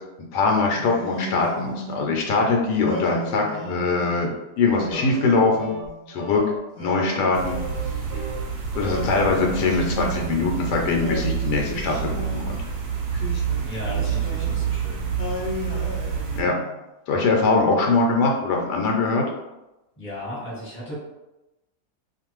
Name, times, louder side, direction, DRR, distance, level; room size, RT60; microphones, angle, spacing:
voice 1, 0.3-5.7 6.1-6.4 6.8-7.6 8.8-12.1 12.4-12.6 16.4-16.5 17.1-19.2, left 3 dB, 80° left, 0 dB, 1.1 m, -22 dB
Singing, 0.8-2.2 2.9-4.2 4.8-6.1 6.8-8.3 8.8-10.6 11.0-12.6 13.1-14.8 15.2-16.8, left 1 dB, 45° left, 0.8 m, -35 dB
sound 1, 4.9-5.3 5.6-5.9 6.2-6.6 6.8-7.1 7.4-8.4 8.7-9.7, right 1 dB, 15° right, 0.5 m, -36 dB
sound 2, 7.3-16.4, right 7 dB, 70° right, 1.0 m, -28 dB
voice 2, 13.6-15.1 20.0-20.9, equal, 10° left, -8 dB, 1.0 m, -35 dB
2.5 x 2.5 x 3.0 m, 0.97 s
omnidirectional pair, 1.8 m